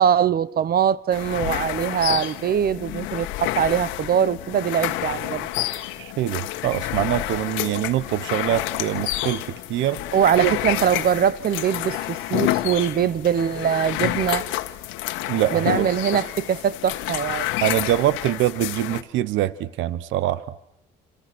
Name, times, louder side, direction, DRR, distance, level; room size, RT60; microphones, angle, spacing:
voice 1, 0.0-5.5 10.1-14.5 15.5-17.5, right 9 dB, 50° right, 1.1 m, -22 dB
sound 1, 1.1-19.0, left 15 dB, 90° left, 1.5 m, -29 dB
voice 2, 6.0-10.0 10.4-10.6 15.3-15.9 17.6-20.4, right 13 dB, 80° right, 1.0 m, -24 dB
29.0 x 26.5 x 6.3 m
cardioid pair, 85°, 20 cm